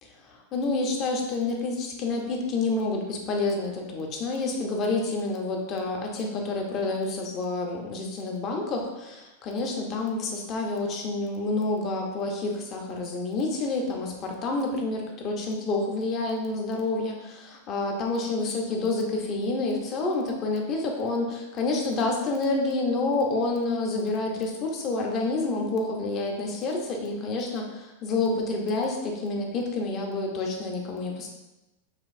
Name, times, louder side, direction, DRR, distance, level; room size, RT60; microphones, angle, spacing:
voice 1, 0.2-31.3, left 3 dB, 35° left, 1 dB, 0.8 m, -28 dB
6.0 x 2.5 x 2.6 m, 1.0 s
hypercardioid pair, 130°, 0 cm